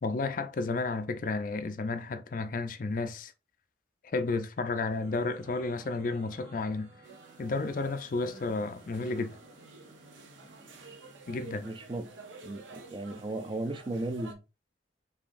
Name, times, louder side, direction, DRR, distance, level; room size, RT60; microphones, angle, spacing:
voice 1, 0.0-3.3 4.0-6.9 7.4-9.4 11.3-11.7, left 3 dB, 45° left, 0.4 m, -32 dB
sound 1, 4.7-12.1, right 1 dB, 50° right, 2.3 m, -55 dB
sound 2, 7.0-14.3, right 4 dB, 85° right, 0.8 m, -51 dB
voice 2, 11.6-12.1 12.4-14.4, right 2 dB, 25° right, 0.4 m, -35 dB
4.9 x 2.7 x 2.5 m
head